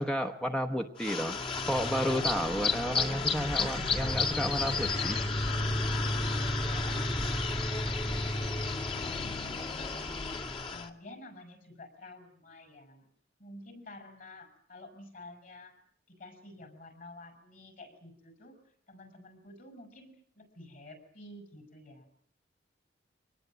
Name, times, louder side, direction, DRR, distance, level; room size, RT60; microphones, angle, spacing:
voice 1, 0.0-1.4 1.7-5.2, equal, 5° left, 5 dB, 1.0 m, -32 dB
sound 1, 1.0-10.9, left 3 dB, 30° left, 2.0 m, -31 dB
voice 2, 6.6-7.3 7.7-8.5 8.9-10.2 10.6-13.1 13.4-15.8 16.1-18.5 18.9-22.1, left 2 dB, 50° left, 8 dB, 6.3 m, -50 dB
25.0 x 19.5 x 9.0 m, 0.63 s
head